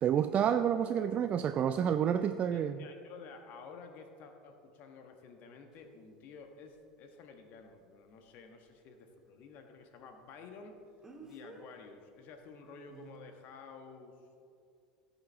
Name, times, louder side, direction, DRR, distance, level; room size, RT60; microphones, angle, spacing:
voice 1, 0.0-2.9, right 8 dB, 35° right, 9 dB, 0.4 m, -29 dB
voice 2, 2.5-10.7 11.2-14.1, left 5 dB, 50° left, 5 dB, 1.4 m, -52 dB
Speech, 5.7-5.8 11.0-11.7 12.9-13.1, right 3 dB, 15° right, 1.6 m, -51 dB
16.0 x 7.3 x 3.5 m, 2.4 s
figure-of-eight pair, 80°, 4 cm